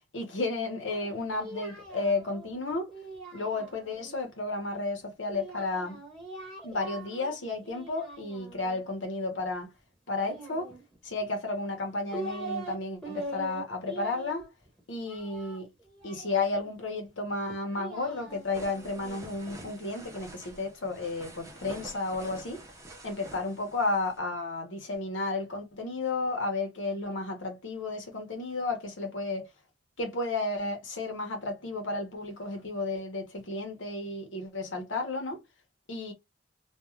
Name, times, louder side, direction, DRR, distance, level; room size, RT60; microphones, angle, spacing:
voice 1, 0.0-2.9 3.3-6.0 6.6-9.7 10.1-10.7 11.0-14.4 14.9-15.7 16.0-22.6 23.0-29.5 30.0-35.4 35.9-36.1, left 3 dB, 75° left, 1.0 m, -32 dB
Singing, 0.9-4.1 5.3-7.3 7.6-8.8 10.2-11.2 11.8-12.8 13.0-16.7 17.5-19.7, right 2 dB, 5° left, 1.0 m, -43 dB
sound 1, 18.3-24.2, right 1 dB, 15° right, 0.6 m, -48 dB
2.5 x 2.4 x 3.1 m
head